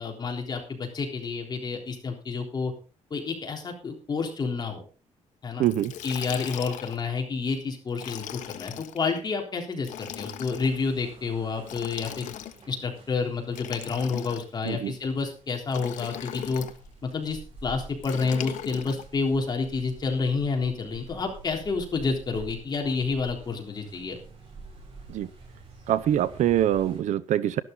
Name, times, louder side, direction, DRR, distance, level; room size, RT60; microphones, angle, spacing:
voice 1, 0.0-2.7 3.1-4.8 5.4-5.6 6.0-12.3 12.7-16.6 17.0-24.2, left 4 dB, 35° left, 2 dB, 3.6 m, -29 dB
Liquid, 5.6-7.1 7.9-9.0 9.8-10.7 11.6-12.7 13.5-14.7 15.7-16.8 18.0-19.0, left 11 dB, 90° left, 1.2 m, -38 dB
voice 2, 5.6-5.9 14.6-14.9 25.1-25.3 25.9-27.6, right 11 dB, 75° right, 17 dB, 0.7 m, -24 dB
sound 1, 10.5-27.0, right 3 dB, 50° right, 7.8 m, -49 dB
12.5 x 12.0 x 3.9 m, 0.35 s
cardioid pair, 145°, 12 cm